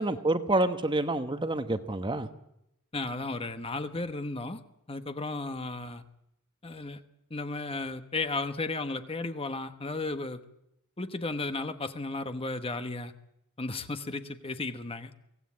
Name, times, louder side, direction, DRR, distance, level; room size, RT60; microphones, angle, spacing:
voice 1, 0.0-2.3, right 2 dB, 20° right, 9 dB, 1.1 m, -28 dB
voice 2, 2.9-4.6 4.9-6.0 6.6-7.0 7.3-10.4 11.0-13.1 13.6-15.1, left 3 dB, 25° left, 9 dB, 1.1 m, -34 dB
23.5 x 17.0 x 8.5 m, 0.82 s
head